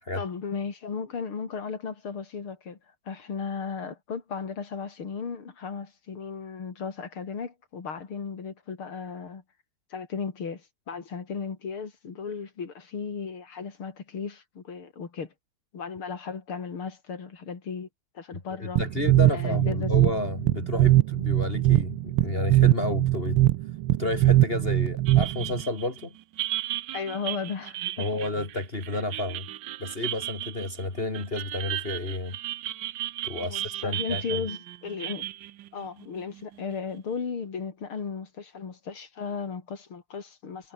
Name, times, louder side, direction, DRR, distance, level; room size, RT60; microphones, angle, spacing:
voice 1, 0.1-2.8 3.1-9.4 9.9-15.3 15.7-17.9 18.2-18.8 19.3-19.9 26.9-28.1 33.4-35.3 35.7-40.7, left 5 dB, 75° left, 3.9 m, -35 dB
voice 2, 18.3-23.4 24.0-26.1 28.0-29.5 29.8-32.4 33.2-34.4, left 2 dB, 25° left, 2.9 m, -31 dB
sound 1, 18.8-25.6, right 15 dB, 85° right, 1.6 m, -22 dB
sound 2, 25.1-36.8, right 14 dB, 65° right, 1.2 m, -35 dB
omnidirectional pair, 2.4 m